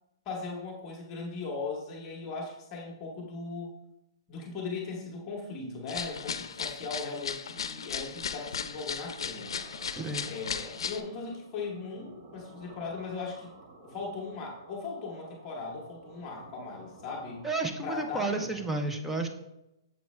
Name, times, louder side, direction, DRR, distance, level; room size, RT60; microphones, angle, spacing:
voice 1, 0.2-3.7 4.3-9.6 10.2-13.5 13.8-17.4 17.8-18.5, left 4 dB, 15° left, -2 dB, 0.9 m, -38 dB
sound 1, 5.9-11.0, left 6 dB, 85° left, 0.4 m, -36 dB
sound 2, 9.4-18.7, right 2 dB, 45° right, 1.0 m, -52 dB
voice 2, 10.0-10.3 17.4-19.3, right 2 dB, 5° right, 5 dB, 0.4 m, -31 dB
7.0 x 4.5 x 3.1 m, 0.89 s
hypercardioid pair, 175°, 3 cm